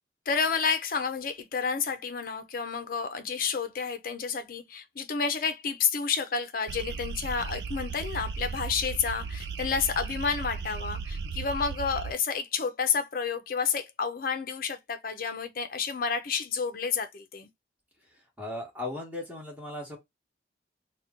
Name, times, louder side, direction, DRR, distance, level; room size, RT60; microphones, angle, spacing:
voice 1, 0.3-17.5, left 6 dB, 50° left, 0.4 m, -30 dB
sound 1, 6.7-12.1, right 5 dB, 65° right, 0.4 m, -36 dB
voice 2, 18.4-20.0, left 2 dB, 10° right, 1.1 m, -37 dB
2.8 x 2.1 x 3.6 m
head